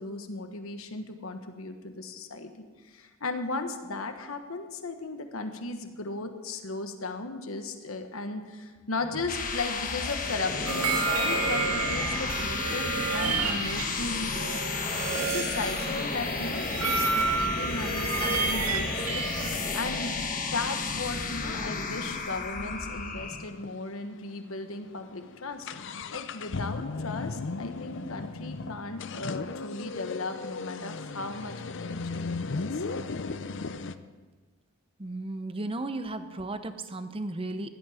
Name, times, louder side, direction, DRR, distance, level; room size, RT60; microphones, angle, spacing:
voice 1, 0.0-20.2 20.5-31.5 31.8-32.8, left 3 dB, 75° left, 7 dB, 1.3 m, -36 dB
sound 1, 9.0-23.5, left 4 dB, 40° left, 1.2 m, -32 dB
sound 2, 10.7-20.2, right 4 dB, 75° right, 2.1 m, -31 dB
sound 3, 14.6-14.7 15.1-17.8 18.4-18.5 18.8-19.0 19.4-23.1 23.4-23.5 23.6-23.7 24.4-24.5 24.8-34.0, left 4 dB, 55° left, 0.6 m, -37 dB
voice 2, 35.0-37.7, right 2 dB, 25° right, 10 dB, 0.8 m, -35 dB
16.5 x 11.5 x 5.0 m, 1.4 s
head